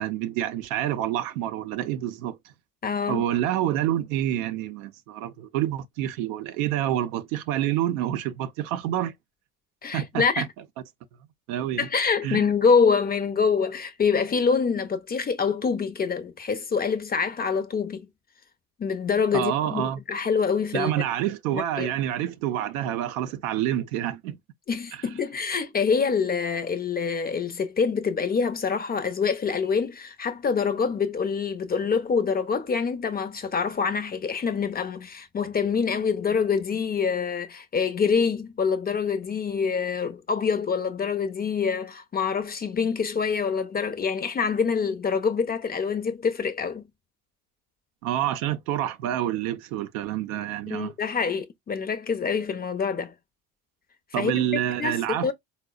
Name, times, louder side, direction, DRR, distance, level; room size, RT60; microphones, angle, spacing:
voice 1, 0.0-2.4 3.1-9.1 9.9-10.5 11.5-11.9 12.2-12.5 19.3-20.0 20.7-24.4 24.9-25.0 48.0-50.9 54.1-55.3, right 12 dB, 80° right, 0.5 m, -27 dB
voice 2, 2.8-3.3 9.8-10.5 11.8-18.1 18.8-20.9 21.5-21.9 24.7-46.9 50.7-53.1 54.2-54.4 54.8-55.3, left 5 dB, 25° left, 0.4 m, -25 dB
3.9 x 2.0 x 2.3 m
hypercardioid pair, 60°, 41 cm